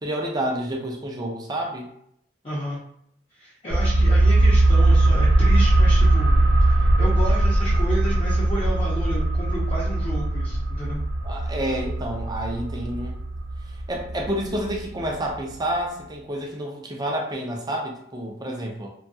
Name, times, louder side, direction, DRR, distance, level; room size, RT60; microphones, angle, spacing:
voice 1, 0.0-1.9 11.2-13.2 13.9-18.9, right 1 dB, 25° right, -1 dB, 0.5 m, -29 dB
voice 2, 2.4-2.8 3.3-6.4 6.7-11.0, equal, 30° left, -9 dB, 0.7 m, -31 dB
sound 1, 3.7-15.1 15.4-15.5, right 2 dB, 80° right, 0.6 m, -20 dB
2.8 x 2.3 x 2.7 m, 0.70 s
head